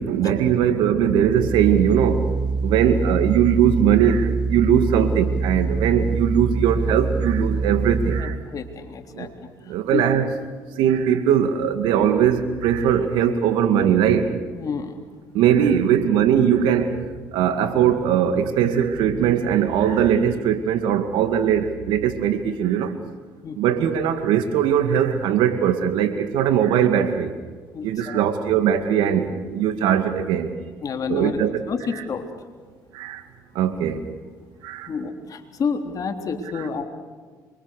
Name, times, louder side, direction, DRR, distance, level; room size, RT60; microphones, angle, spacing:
voice 1, 0.0-2.3 2.6-8.4 9.1-9.3 9.7-10.2 10.8-14.3 15.3-17.0 17.3-22.9 23.6-27.3 27.8-30.5 31.1-31.6 31.9-32.0 32.9-33.2 33.5-34.0 34.6-34.9 36.5-36.6, right 9 dB, 80° right, 8 dB, 2.3 m, -20 dB
sound 1, 1.4-8.2, right 4 dB, 15° right, 3.5 m, -24 dB
voice 2, 8.2-9.5 9.9-10.1 14.5-15.0 23.4-23.6 27.7-28.2 30.8-31.4 31.7-32.2 34.9-36.8, left 5 dB, 50° left, 5 dB, 3.6 m, -29 dB
26.5 x 24.0 x 6.7 m, 1.5 s
supercardioid pair, 75°, 8 cm